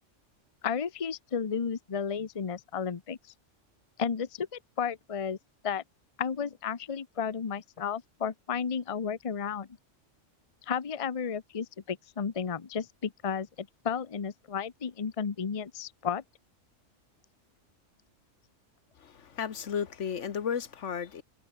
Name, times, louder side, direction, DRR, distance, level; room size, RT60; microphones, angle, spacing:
voice 1, 0.6-3.2 4.0-5.4 5.6-5.8 6.2-9.7 10.7-16.2, left 7 dB, 30° left, 0.8 m, -33 dB
voice 2, 19.0-21.2, left 7 dB, 70° left, 1.4 m, -34 dB
omnidirectional pair, 1.3 m